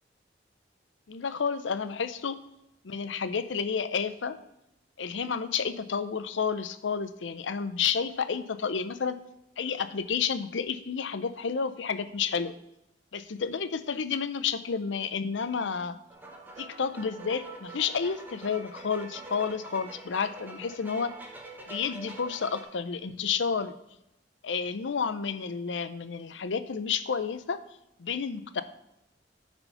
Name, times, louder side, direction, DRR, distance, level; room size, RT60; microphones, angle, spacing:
voice 1, 1.1-2.4 2.8-4.4 5.0-9.2 9.6-12.5 13.1-16.0 16.6-21.1 21.7-23.7 24.4-27.6 28.0-28.6, left 6 dB, 90° left, 12 dB, 0.6 m, -30 dB
sound 1, 16.1-22.6, right 3 dB, 10° right, 1.1 m, -45 dB
9.8 x 4.5 x 5.5 m, 0.86 s
head